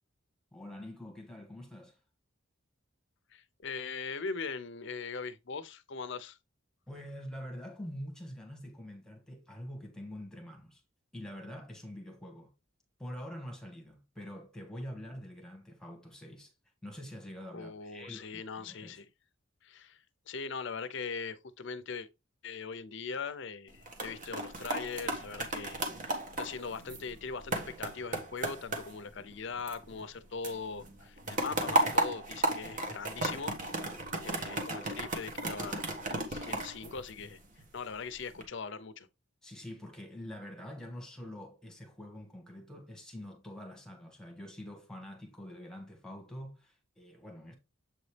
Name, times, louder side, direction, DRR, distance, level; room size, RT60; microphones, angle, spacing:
voice 1, 0.5-2.0 6.9-10.8 11.1-12.5 13.0-16.5 16.8-19.0 34.2-34.7 39.4-47.5, equal, 5° left, 1.6 m, -45 dB
voice 2, 3.3-6.4 17.5-19.1 19.6-20.0 20.3-22.1 22.4-33.5 33.8-33.9 34.2-37.4 37.7-39.1, left 5 dB, 60° left, 0.6 m, -41 dB
sound 1, 23.7-30.2 30.4-37.6 38.1-38.4, right 2 dB, 40° right, 1.3 m, -35 dB
7.7 x 4.0 x 3.3 m
head